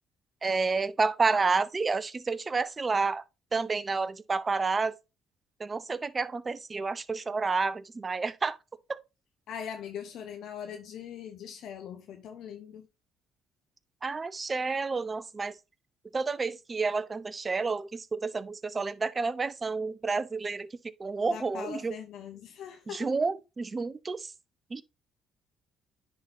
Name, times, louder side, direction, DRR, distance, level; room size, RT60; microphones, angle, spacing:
voice 1, 0.4-3.2 3.5-4.9 5.6-8.6 8.9-9.0 14.0-15.5 16.1-20.7 21.0-22.0 22.9-24.3 24.7-24.8, right 4 dB, 30° right, 0.6 m, -30 dB
voice 2, 9.5-12.9 21.3-23.1, left 8 dB, 70° left, 0.8 m, -41 dB
9.8 x 3.9 x 2.6 m
supercardioid pair, 70°, 0 cm